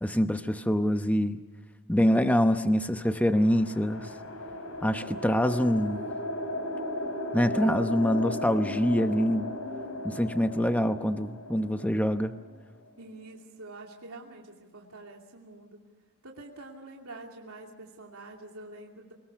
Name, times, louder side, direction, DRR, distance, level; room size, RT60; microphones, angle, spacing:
voice 1, 0.0-1.4 1.9-4.1 4.8-6.0 7.3-9.5 10.0-12.3, equal, 5° left, 8 dB, 0.8 m, -25 dB
sound 1, 2.6-13.0, left 1 dB, 70° left, 4.3 m, -36 dB
voice 2, 13.0-15.8 16.2-19.1, right 2 dB, 75° right, 0 dB, 2.7 m, -46 dB
27.5 x 19.5 x 7.0 m, 1.4 s
head